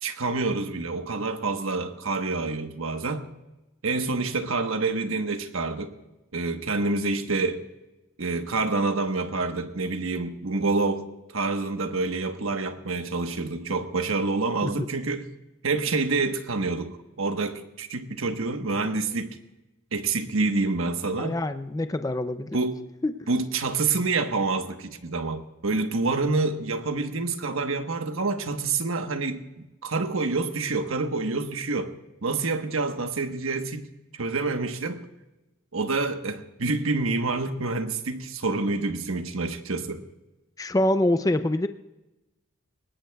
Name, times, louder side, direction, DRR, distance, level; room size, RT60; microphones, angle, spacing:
voice 1, 0.0-3.3 3.8-5.9 6.3-7.6 8.2-15.2 15.6-19.4 19.9-21.4 22.5-22.8 23.3-29.4 29.8-31.9 32.2-33.9 34.1-35.0 35.7-40.0, right 3 dB, 85° right, 1.2 m, -27 dB
voice 2, 21.2-22.6 23.0-23.3 40.6-41.7, left 1 dB, 15° left, 0.4 m, -25 dB
21.0 x 19.0 x 2.3 m
head